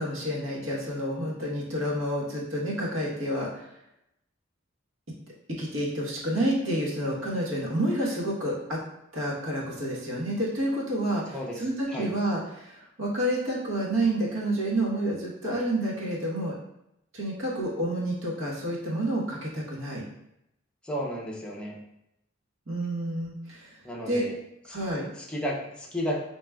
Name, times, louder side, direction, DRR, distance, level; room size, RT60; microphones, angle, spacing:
voice 1, 0.0-3.7 5.6-8.8 9.1-16.5 17.1-20.0 22.7-23.7 24.1-24.2 24.7-25.1, right 1 dB, 70° right, -4 dB, 1.2 m, -29 dB
voice 2, 11.3-12.1 20.8-21.7 23.8-24.3 25.2-26.2, equal, 5° left, -4 dB, 0.6 m, -33 dB
4.7 x 2.9 x 2.3 m, 0.81 s
head